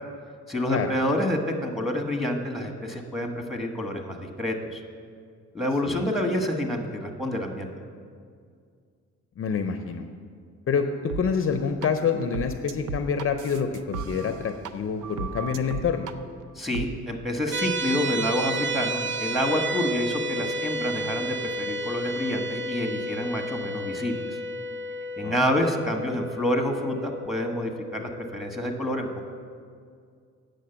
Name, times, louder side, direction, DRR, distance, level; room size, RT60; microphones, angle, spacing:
voice 1, 0.5-4.8 5.5-7.7 16.6-24.2 25.2-29.3, left 1 dB, ahead, 2 dB, 1.3 m, -28 dB
voice 2, 9.4-10.1 10.7-16.1 25.2-25.5, left 6 dB, 45° left, 7 dB, 0.6 m, -27 dB
sound 1, 11.1-11.2 11.8-11.9 12.3-14.7 15.0-16.1 16.7-16.9, right 5 dB, 90° right, 0.6 m, -35 dB
sound 2, 17.5-28.7, right 1 dB, 40° right, 0.7 m, -32 dB
8.4 x 6.5 x 7.8 m, 2.2 s
cardioid pair, 90°, 30 cm